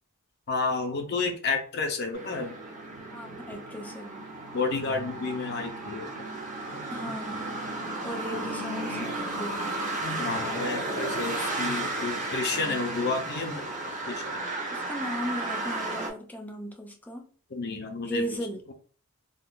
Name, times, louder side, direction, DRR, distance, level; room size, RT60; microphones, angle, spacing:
voice 1, 0.5-2.6 4.5-6.3 6.7-6.8 7.3-7.4 8.3-8.4 10.0-14.4 17.5-18.2, left 4 dB, 50° left, 4 dB, 0.6 m, -31 dB
sound 1, 2.1-16.1, right 2 dB, 35° right, 0.8 m, -34 dB
voice 2, 3.1-4.3 6.9-7.6 8.0-9.7 12.5-12.8 14.7-17.3 18.1-18.6, equal, 10° left, 2 dB, 0.5 m, -36 dB
3.6 x 2.4 x 2.4 m, 0.41 s
head